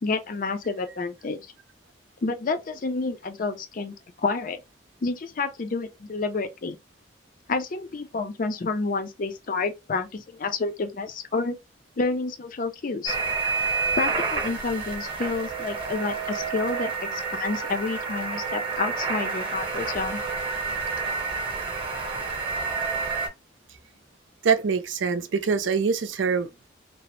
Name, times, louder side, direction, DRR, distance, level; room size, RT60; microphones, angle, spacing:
voice 1, 0.0-1.5 2.2-4.6 5.0-6.8 7.5-11.6 12.0-13.2 14.0-20.2, left 3 dB, 45° left, 0.5 m, -29 dB
sound 1, 13.1-23.3, right 4 dB, 30° right, 0.8 m, -29 dB
voice 2, 24.4-26.7, right 5 dB, 90° right, 0.5 m, -24 dB
2.9 x 2.0 x 3.0 m
head